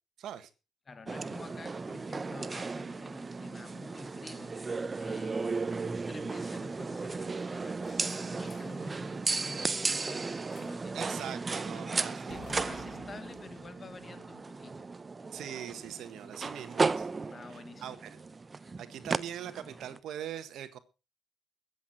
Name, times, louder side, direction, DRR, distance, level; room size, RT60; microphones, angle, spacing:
voice 1, 0.2-0.5 10.9-12.4 15.3-17.1 17.8-18.2 18.8-20.8, right 10 dB, 75° right, 1.5 m, -41 dB
voice 2, 0.9-5.6 5.9-11.0 11.7-14.9 17.3-18.0, left 4 dB, 35° left, 1.5 m, -49 dB
sound 1, 1.1-20.0, right 4 dB, 30° right, 0.8 m, -35 dB
sound 2, 7.8-8.8 10.5-10.9 11.2-11.5 12.3-14.6, left 6 dB, 50° left, 1.2 m, -52 dB
21.5 x 8.3 x 4.3 m
cardioid pair, 90°, 0 cm